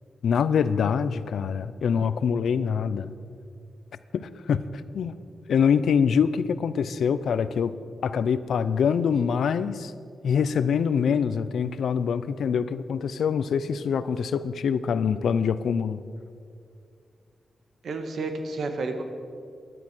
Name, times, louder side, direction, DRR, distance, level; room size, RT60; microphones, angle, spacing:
voice 1, 0.2-3.1 4.1-4.6 4.9-5.1 5.5-7.7 8.0-9.9 10.2-16.0, left 7 dB, 85° left, 14 dB, 0.6 m, -24 dB
voice 2, 17.8-19.0, right 3 dB, 70° right, 6 dB, 1.6 m, -31 dB
15.5 x 11.0 x 6.2 m, 2.3 s
wide cardioid pair, 100°, 0 cm